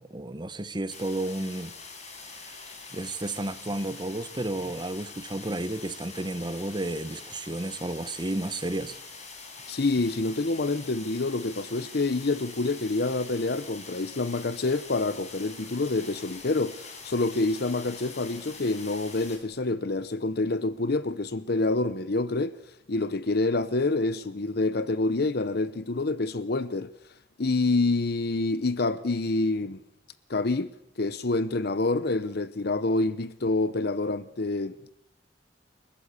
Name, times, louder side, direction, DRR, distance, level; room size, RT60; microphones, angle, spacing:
voice 1, 0.0-1.7 2.2-2.6 2.9-9.0, right 1 dB, 25° right, 1.0 m, -32 dB
sound 1, 0.9-19.4, left 4 dB, 40° left, 4.8 m, -44 dB
voice 2, 9.7-22.5 22.9-26.9 27.4-29.8 30.3-30.7 31.0-34.9, left 2 dB, 60° left, 0.8 m, -27 dB
29.0 x 13.0 x 8.3 m
head